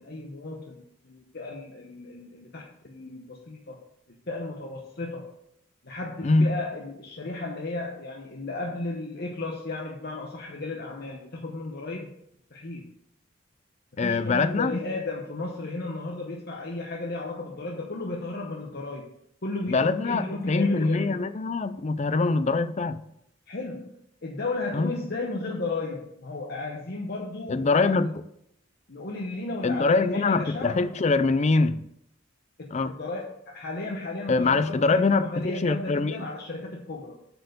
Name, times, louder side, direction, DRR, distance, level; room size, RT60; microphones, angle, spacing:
voice 1, 0.0-3.8 4.3-5.3 5.8-12.1 12.5-12.8 14.0-19.1 19.4-21.2 23.5-28.1 28.9-30.9 32.6-37.2, left 2 dB, 55° left, -1 dB, 0.9 m, -34 dB
voice 2, 6.2-6.5 14.0-14.7 19.7-23.0 24.7-24.9 27.5-28.1 29.6-31.8 32.7-32.9 34.3-36.3, left 3 dB, 35° left, 13 dB, 0.4 m, -23 dB
7.9 x 4.5 x 6.7 m, 0.75 s
head